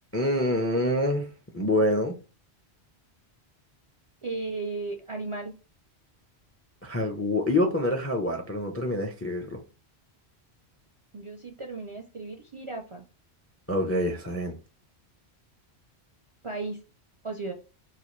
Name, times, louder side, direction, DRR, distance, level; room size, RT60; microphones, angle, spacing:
voice 1, 0.1-1.3 1.5-2.1 6.8-9.6 13.7-14.5, left 1 dB, 25° left, 0.3 m, -26 dB
voice 2, 4.2-5.6 11.1-13.0 16.4-16.8 17.2-17.5, right 3 dB, 45° right, 0.4 m, -35 dB
4.0 x 2.5 x 3.0 m
omnidirectional pair, 1.1 m